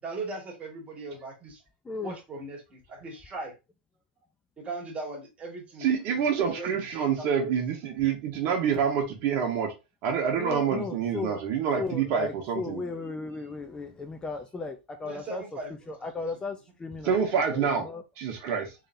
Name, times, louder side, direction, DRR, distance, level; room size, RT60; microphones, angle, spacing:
voice 1, 0.0-1.6 2.0-3.5 4.6-7.6 15.0-15.9, right 3 dB, 25° right, 2.0 m, -39 dB
voice 2, 1.8-2.2 10.4-11.4 11.8-15.4 15.9-17.1 17.5-18.0, left 4 dB, 15° left, 0.5 m, -35 dB
voice 3, 5.8-9.7 10.0-12.8 17.0-17.9 18.2-18.7, right 7 dB, 50° right, 1.4 m, -27 dB
3.6 x 3.4 x 2.7 m
hypercardioid pair, 115°, 6 cm